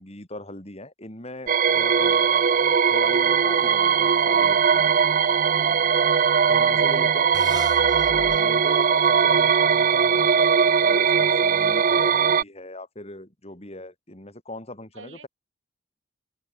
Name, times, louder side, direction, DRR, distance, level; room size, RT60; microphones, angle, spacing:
voice 1, 0.0-2.4 2.9-5.2 6.5-7.6 8.1-15.3, left 2 dB, 35° left, 5.0 m, -39 dB
sound 1, 1.5-12.4, right 6 dB, 45° right, 0.5 m, -20 dB
voice 2, 4.0-4.3 6.7-6.9 14.9-15.3, right 3 dB, 75° right, 6.1 m, -48 dB
sound 2, 7.3-10.6, right 2 dB, 20° right, 2.0 m, -37 dB
head